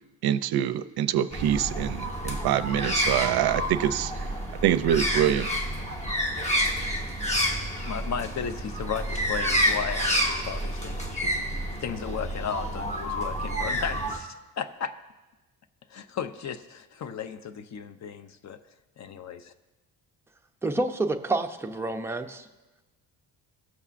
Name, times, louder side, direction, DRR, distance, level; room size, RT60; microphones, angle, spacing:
voice 1, 0.2-4.3 4.6-5.5, right 11 dB, 70° right, 13 dB, 0.5 m, -25 dB
sound 1, 1.3-14.2, equal, 15° left, 1.1 m, -29 dB
voice 2, 7.8-11.4 11.8-15.0 15.9-18.6 19.0-19.5, left 7 dB, 45° left, 10 dB, 0.6 m, -35 dB
voice 3, 20.6-22.5, right 2 dB, 5° right, 4 dB, 0.4 m, -28 dB
18.5 x 6.8 x 2.5 m, 1.1 s
cardioid pair, 130°, 40 cm